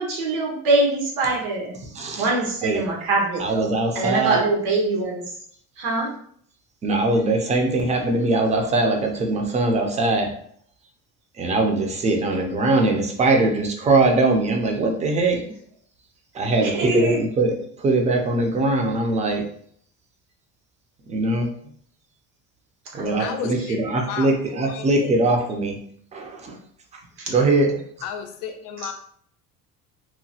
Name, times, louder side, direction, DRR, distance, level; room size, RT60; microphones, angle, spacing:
voice 1, 0.0-1.8 2.1-5.4 5.8-6.1 16.6-17.2 22.8-23.4 27.2-27.3 28.8-28.9, right 2 dB, 90° right, -1 dB, 1.0 m, -24 dB
voice 2, 3.4-4.4 6.8-10.3 11.4-15.4 16.3-19.4 21.1-21.5 22.9-25.8 26.1-26.6 27.3-27.7, right 2 dB, 20° right, 2 dB, 0.4 m, -21 dB
voice 3, 23.2-25.1 28.0-28.9, left 8 dB, 85° left, 6 dB, 0.5 m, -33 dB
2.9 x 2.1 x 2.7 m, 0.63 s
cardioid pair, 145°, 31 cm